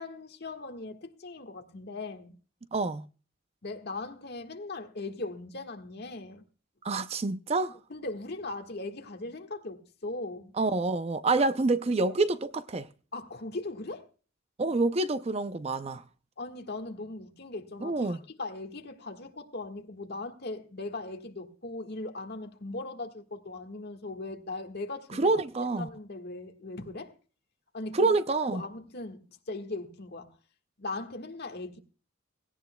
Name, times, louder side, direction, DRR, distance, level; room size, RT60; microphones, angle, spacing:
voice 1, 0.0-2.3 3.6-6.4 7.9-10.5 11.3-11.4 12.0-12.1 13.1-14.1 16.4-25.3 25.8-27.1 27.7-28.1 28.5-29.2 29.5-30.4 30.8-31.8, left 2 dB, 55° left, 1.6 m, -39 dB
voice 2, 2.7-3.0 6.8-7.7 10.6-12.9 14.6-16.0 17.8-18.2 25.1-25.9 27.9-28.6, right 3 dB, 30° right, 0.5 m, -27 dB
17.0 x 17.0 x 2.2 m
head